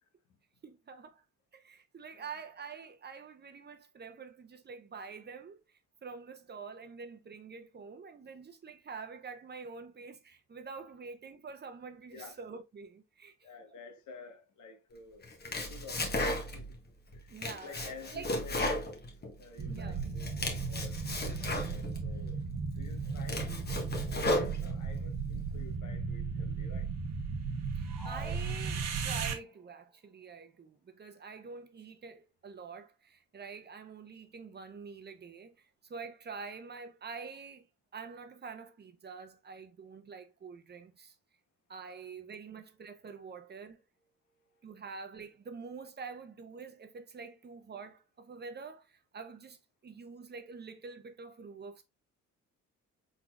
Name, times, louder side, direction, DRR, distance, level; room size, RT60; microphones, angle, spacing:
voice 1, 0.6-1.2 1.5-13.8 17.3-18.3 19.7-20.0 27.7-37.7 37.9-41.1 41.7-43.8 44.6-51.8, right 5 dB, 35° right, 0.8 m, -46 dB
voice 2, 13.4-15.3 15.6-16.8 17.1-17.3 17.6-18.9 19.4-22.4 22.8-23.7 24.1-26.9, left 4 dB, 75° left, 1.2 m, -51 dB
Domestic sounds home sounds, 15.2-16.8 17.1-19.7 20.0-22.0 22.6-22.7 23.1-25.0, left 1 dB, 35° left, 1.2 m, -35 dB
sound 1, 19.6-29.3, right 5 dB, 60° right, 1.0 m, -36 dB
sound 2, 27.9-29.3, left 1 dB, ahead, 0.6 m, -50 dB
4.6 x 4.0 x 2.3 m
cardioid pair, 90°, 30 cm